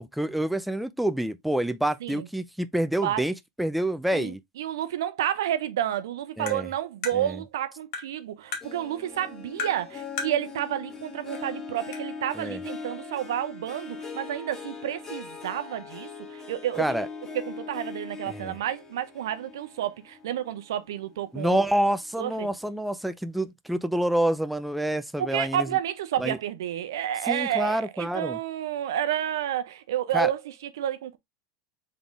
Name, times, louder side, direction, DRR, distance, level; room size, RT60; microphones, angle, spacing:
voice 1, 0.0-4.4 6.4-6.7 7.1-7.4 12.4-12.6 16.8-17.1 18.3-18.6 21.3-25.7 26.2-26.4 27.3-28.4 30.1-30.3, right 1 dB, ahead, 0.4 m, -27 dB
voice 2, 4.1-16.8 17.3-21.6 22.2-22.5 25.2-31.2, right 11 dB, 80° right, 0.6 m, -30 dB
Tap, 6.5-6.6 7.0-7.2 7.9-8.1 8.5-8.7 9.6-9.8 10.2-10.4 11.3-11.4 11.9-12.0, left 5 dB, 65° left, 1.8 m, -33 dB
Harp, 8.6-21.3 21.8-22.2 22.6-22.7, left 5 dB, 20° left, 1.4 m, -41 dB
3.8 x 3.5 x 3.4 m
hypercardioid pair, 110°, 2 cm